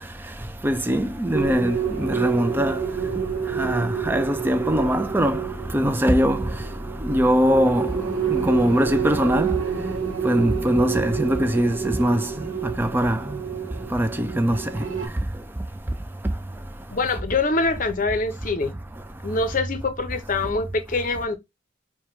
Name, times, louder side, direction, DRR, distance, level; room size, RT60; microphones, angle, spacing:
voice 1, 0.6-2.8 3.6-5.4 5.7-6.5 7.0-7.9 8.3-9.5 10.2-12.3 12.8-13.2 13.9-14.6, equal, 10° right, 0.3 m, -21 dB
sound 1, 1.3-15.1, right 7 dB, 90° right, 1.0 m, -29 dB
voice 2, 16.9-18.7 19.2-21.4, left 3 dB, 45° left, 0.7 m, -24 dB
4.7 x 2.2 x 2.9 m
head